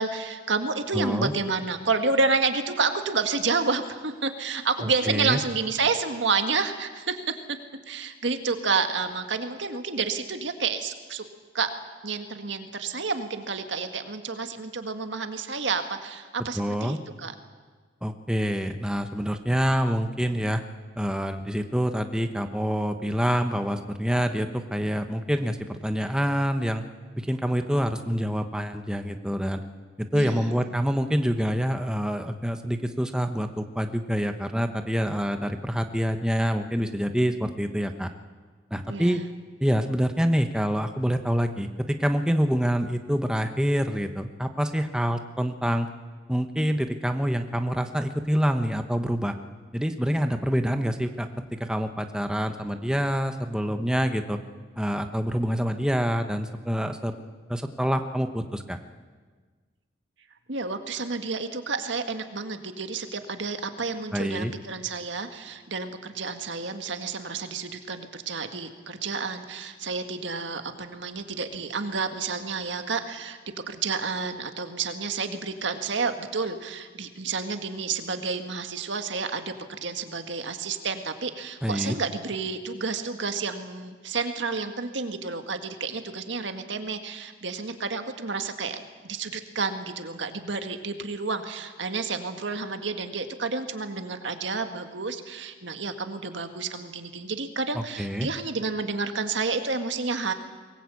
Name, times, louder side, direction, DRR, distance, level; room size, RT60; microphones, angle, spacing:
voice 1, 0.0-7.6 7.9-11.2 11.5-11.7 12.0-17.3 30.1-30.5 38.9-39.3 60.5-73.4 73.7-100.3, right 4 dB, 70° right, 7 dB, 1.9 m, -30 dB
voice 2, 0.9-1.3 4.8-5.4 16.5-17.0 18.0-20.6 21.0-26.8 27.2-29.6 30.0-38.1 38.7-39.2 39.6-45.9 46.3-49.3 49.7-54.4 54.8-57.1 57.5-58.8 64.1-64.5 81.6-82.0 97.7-98.3, equal, 5° right, 6 dB, 1.0 m, -26 dB
23.0 x 20.0 x 8.5 m, 1.4 s
head